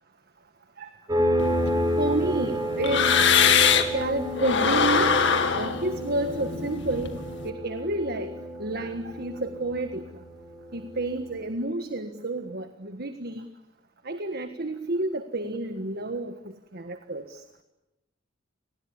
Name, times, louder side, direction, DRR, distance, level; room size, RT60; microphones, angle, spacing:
sound 1, 1.1-11.4, equal, 20° right, 6.3 m, -30 dB
sound 2, 1.4-4.0 4.4-7.4, left 6 dB, 65° left, 2.4 m, -23 dB
voice 1, 2.0-3.2 3.9-5.3 5.5-10.2 10.7-13.5 14.0-16.3 16.7-17.4, right 2 dB, 55° right, 8 dB, 1.6 m, -30 dB
29.5 x 20.0 x 10.0 m, 0.97 s
head